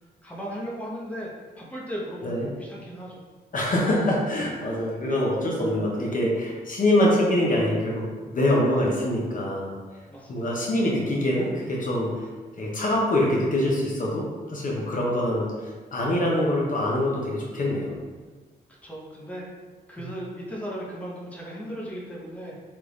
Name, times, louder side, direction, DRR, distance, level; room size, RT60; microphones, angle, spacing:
voice 1, 0.2-1.3 1.6-3.2 10.1-10.5 18.8-19.5 19.9-22.6, equal, 10° left, -4 dB, 0.8 m, -36 dB
voice 2, 3.5-9.8 10.3-12.3 12.6-15.5 15.9-17.9, left 1 dB, 50° left, -3 dB, 0.8 m, -24 dB
3.3 x 2.4 x 3.1 m, 1.4 s
cardioid pair, 60°, 17 cm